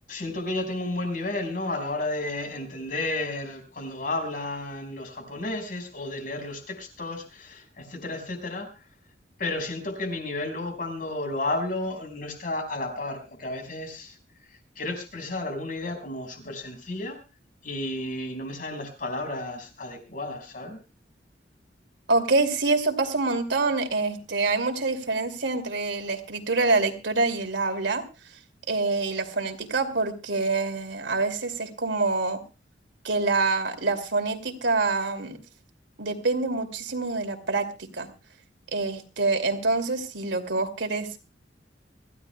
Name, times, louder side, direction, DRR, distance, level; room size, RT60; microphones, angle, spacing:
voice 1, 0.1-8.7 9.4-14.2 14.8-17.2 17.6-20.8, left 2 dB, 50° left, 5 dB, 5.4 m, -32 dB
voice 2, 22.1-28.0 28.7-32.4 33.0-35.4 36.0-38.1 38.7-41.2, right 3 dB, 85° right, 7 dB, 2.6 m, -26 dB
25.0 x 15.5 x 2.3 m, 0.31 s
head